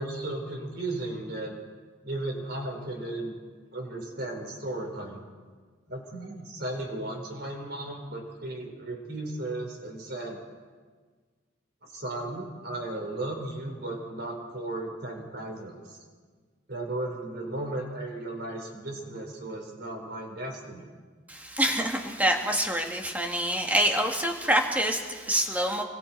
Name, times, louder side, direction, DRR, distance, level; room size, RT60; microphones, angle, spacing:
voice 1, 0.0-1.5 2.0-3.3 3.7-5.2 5.9-10.4 11.8-16.0 16.7-20.9, right 2 dB, 50° right, 2 dB, 4.7 m, -35 dB
voice 2, 21.3-25.8, right 1 dB, 10° right, 2 dB, 1.9 m, -26 dB
26.0 x 23.0 x 4.7 m, 1.5 s
head